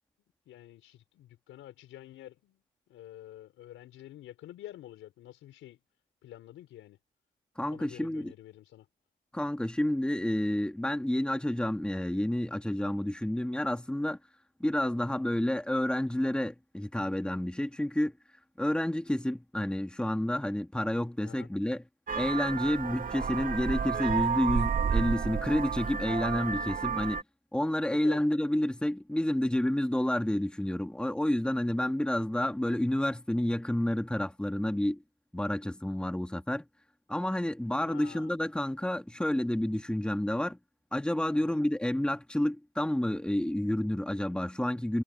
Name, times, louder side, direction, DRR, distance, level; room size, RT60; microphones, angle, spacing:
voice 1, 0.5-2.6 2.9-5.8 6.2-7.0 7.7-8.9 21.2-21.5 28.0-28.2 37.8-38.3 41.3-41.5, left 13 dB, 85° left, 4.9 m, -48 dB
voice 2, 7.6-8.3 9.3-14.2 14.6-18.1 18.6-21.8 22.1-27.2 27.5-35.0 35.3-36.7 37.1-40.6 40.9-45.0, left 1 dB, 5° left, 2.3 m, -29 dB
Vehicle horn car horn honking, 22.1-27.2, right 6 dB, 45° right, 2.6 m, -31 dB
cardioid pair, 90°, 20 cm